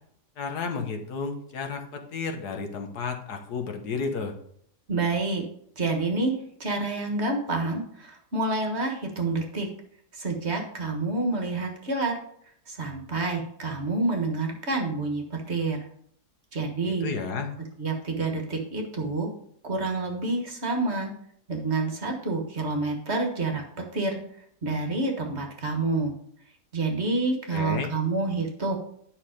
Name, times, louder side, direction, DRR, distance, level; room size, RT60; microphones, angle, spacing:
voice 1, 0.4-4.4 16.9-17.5 27.5-27.9, left 5 dB, 70° left, 4 dB, 1.6 m, -32 dB
voice 2, 4.9-5.4 5.8-6.3 6.6-9.7 10.1-12.1 12.7-15.9 16.5-17.1 17.8-19.3 19.6-21.1 21.5-24.2 24.6-26.1 26.7-28.8, right 3 dB, 40° right, 2 dB, 1.7 m, -28 dB
9.7 x 5.7 x 5.1 m, 0.67 s
omnidirectional pair, 1.8 m